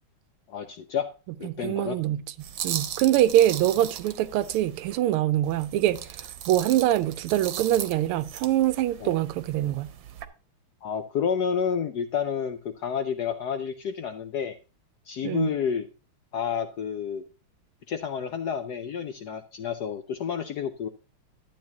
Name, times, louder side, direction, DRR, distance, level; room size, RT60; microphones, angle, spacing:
voice 1, 0.5-1.1 1.4-2.0 9.0-9.2 10.8-14.6 15.1-15.8 16.3-17.2 17.9-20.9, left 7 dB, 75° left, 0.9 m, -30 dB
voice 2, 1.4-9.9 15.2-15.5, right 13 dB, 85° right, 1.5 m, -24 dB
sound 1, 2.4-5.0 5.4-10.3, right 10 dB, 70° right, 1.4 m, -38 dB
12.0 x 8.7 x 2.8 m
omnidirectional pair, 2.4 m